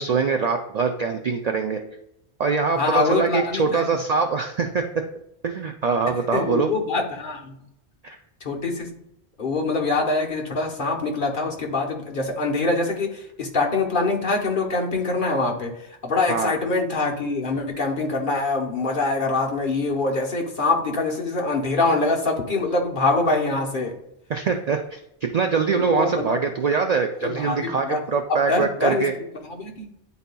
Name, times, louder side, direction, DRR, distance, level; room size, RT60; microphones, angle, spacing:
voice 1, 0.0-1.8 2.4-4.8 5.4-6.7 8.0-8.2 16.3-16.5 24.3-25.0 25.3-29.1, right 5 dB, 60° right, 5 dB, 0.4 m, -23 dB
voice 2, 2.7-4.0 6.0-7.6 8.4-8.9 9.4-24.0 25.7-26.4 27.2-28.0 28.3-29.0 29.4-29.9, left 3 dB, 50° left, 0 dB, 1.1 m, -24 dB
10.0 x 4.1 x 2.2 m, 0.81 s
omnidirectional pair, 1.1 m